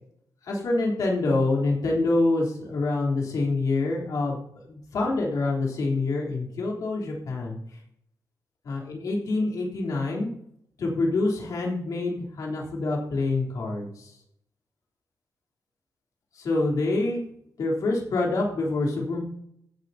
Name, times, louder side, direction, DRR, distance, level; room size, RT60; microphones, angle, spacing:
voice 1, 0.4-7.6 8.6-10.3 10.8-14.1 16.4-17.2 17.6-19.2, left 2 dB, 60° left, -2 dB, 3.4 m, -26 dB
15.5 x 9.8 x 2.8 m, 0.71 s
wide cardioid pair, 155°, 7 cm